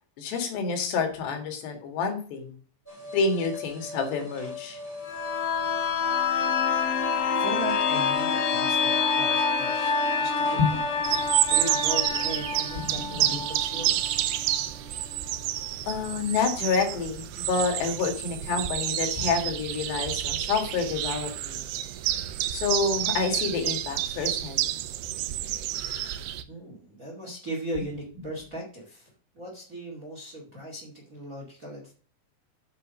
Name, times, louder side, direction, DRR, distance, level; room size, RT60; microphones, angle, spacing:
voice 1, 0.2-2.6 3.1-4.8 10.6-10.7 12.9-13.4 15.9-21.6 22.5-24.7, left 5 dB, 85° left, 4 dB, 4.1 m, -28 dB
sound 1, 2.9-12.1, left 3 dB, 10° left, 4.5 m, -39 dB
sound 2, 5.0-14.6 15.0-15.1, left 5 dB, 65° left, 1.6 m, -27 dB
voice 2, 7.0-10.8 11.1-14.3 26.5-29.1 29.3-31.9, right 1 dB, 30° right, -1 dB, 1.9 m, -38 dB
sound 3, 11.0-26.4, right 13 dB, 80° right, 2.8 m, -29 dB
8.2 x 6.4 x 6.4 m, 0.41 s
omnidirectional pair, 4.8 m